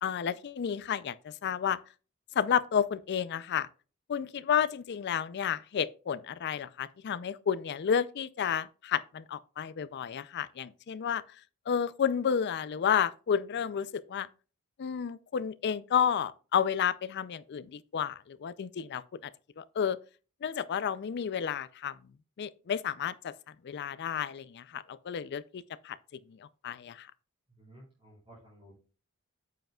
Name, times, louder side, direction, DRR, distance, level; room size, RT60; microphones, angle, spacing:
voice 1, 0.0-1.8 2.4-3.7 4.1-11.2 11.7-14.3 14.8-19.0 19.6-20.0 20.4-22.0 22.4-23.3 23.6-26.0 26.6-27.1, left 8 dB, 50° left, 0.4 m, -31 dB
voice 2, 27.5-28.7, right 1 dB, 25° right, 4.0 m, -55 dB
9.1 x 7.8 x 2.3 m
head